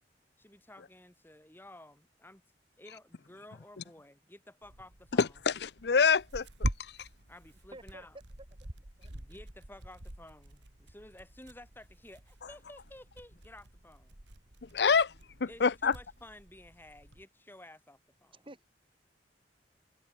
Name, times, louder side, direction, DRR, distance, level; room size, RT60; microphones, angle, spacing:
voice 1, 0.4-2.4 2.8-5.4 7.3-8.2 9.1-14.1 15.5-18.5, left 1 dB, 10° left, 6.2 m, -53 dB
Tearing, 4.6-17.2, right 1 dB, 85° right, 2.8 m, -44 dB
voice 2, 5.2-7.1 14.7-15.1 15.6-15.9, left 5 dB, 65° left, 0.6 m, -26 dB
voice 3, 7.7-8.1 9.0-9.1 18.3-18.7, right 1 dB, 30° right, 4.0 m, -50 dB
head